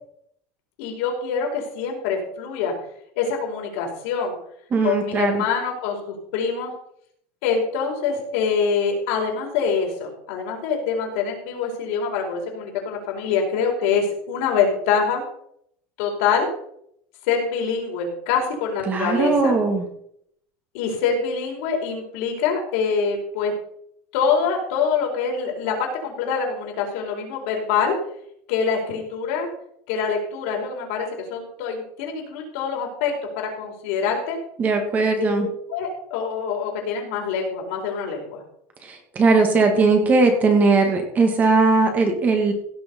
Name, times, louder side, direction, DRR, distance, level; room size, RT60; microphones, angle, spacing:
voice 1, 0.8-2.7 3.1-4.4 4.8-6.7 7.4-15.2 16.0-16.5 17.3-19.5 20.7-23.5 24.1-28.0 28.5-29.5 29.9-34.4 35.1-38.4, left 6 dB, 70° left, 0 dB, 4.8 m, -25 dB
voice 2, 4.7-5.4 18.9-19.9 34.6-35.5 38.8-42.5, right 3 dB, 25° right, 5 dB, 2.1 m, -19 dB
16.5 x 7.0 x 5.4 m, 0.69 s
cardioid pair, 165°, 7 cm